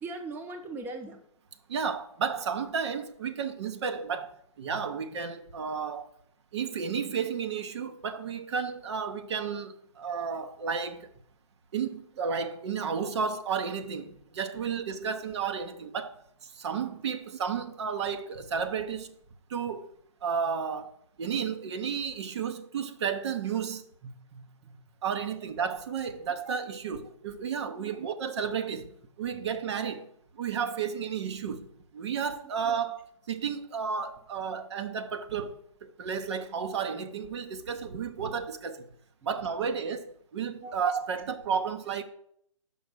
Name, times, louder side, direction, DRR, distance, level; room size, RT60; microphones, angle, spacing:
voice 1, 0.0-1.2 24.0-24.4 26.3-26.4 27.8-28.0 32.4-32.5 39.2-39.4 40.6-40.8, right 3 dB, 10° right, 0.8 m, -41 dB
voice 2, 1.7-6.1 6.5-11.1 11.7-19.1 19.5-19.9 20.2-20.9 21.2-23.8 25.0-30.1 30.3-31.7 31.9-38.9 39.2-42.0, right 6 dB, 55° right, 0.8 m, -32 dB
6.3 x 5.5 x 6.1 m
hypercardioid pair, 140°, 17 cm